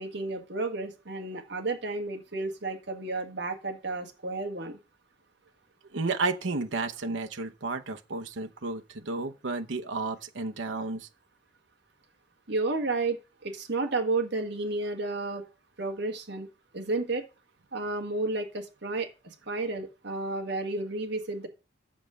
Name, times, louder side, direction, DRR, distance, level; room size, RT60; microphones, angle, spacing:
voice 1, 0.0-4.8 12.5-15.4 15.8-16.5 16.7-17.2 17.7-21.5, right 3 dB, 65° right, 1.8 m, -32 dB
voice 2, 5.9-11.1, right 3 dB, 85° right, 0.9 m, -32 dB
8.7 x 7.0 x 5.0 m
head